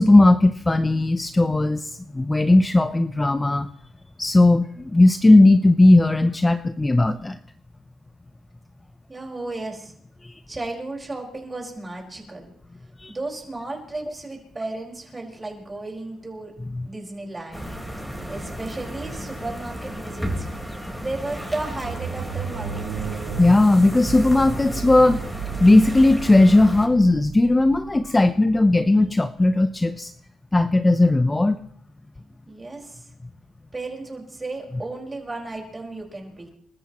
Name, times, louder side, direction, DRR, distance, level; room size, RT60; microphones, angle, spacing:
voice 1, 0.0-3.7 4.2-7.4 10.2-10.4 13.0-13.1 16.7-16.9 23.3-25.2 25.6-30.1 30.5-31.6, left 2 dB, 15° left, 10 dB, 0.6 m, -17 dB
voice 2, 9.1-9.9 10.5-12.5 13.1-16.5 16.8-17.7 18.3-20.5 21.0-22.9 32.5-33.1 33.7-36.6, right 2 dB, 20° right, 1 dB, 4.9 m, -34 dB
sound 1, 17.5-26.9, equal, ahead, 4.2 m, -34 dB
sound 2, 21.4-29.3, right 8 dB, 80° right, 1.2 m, -35 dB
28.5 x 13.5 x 3.0 m, 0.64 s
cardioid pair, 90°, 0 cm